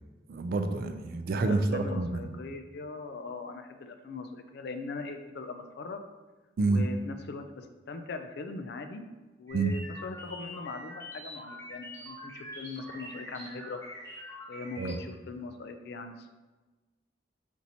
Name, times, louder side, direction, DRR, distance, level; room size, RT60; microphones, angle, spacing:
voice 1, 0.3-2.3 6.6-6.9 9.5-9.8 14.8-15.0, right 3 dB, 50° right, 8 dB, 0.3 m, -28 dB
voice 2, 1.3-6.0 6.7-9.0 9.4-13.8 14.5-16.3, left 3 dB, 60° left, 7 dB, 0.4 m, -40 dB
sound 1, 9.5-15.0, left 1 dB, 15° left, 1.0 m, -45 dB
4.5 x 2.8 x 4.0 m, 1.2 s
head